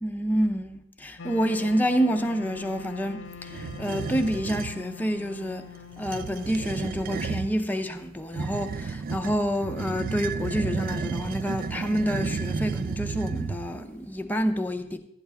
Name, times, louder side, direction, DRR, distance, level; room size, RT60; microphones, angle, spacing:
voice 1, 0.0-5.6 6.0-15.0, equal, 10° left, 0.6 m, -28 dB
Wind instrument woodwind instrument, 1.2-8.1, left 5 dB, 80° left, 0.6 m, -44 dB
sound 1, 3.5-4.8 5.9-7.5 8.3-13.8, right 5 dB, 50° right, 0.3 m, -32 dB
11.5 x 10.0 x 3.4 m
head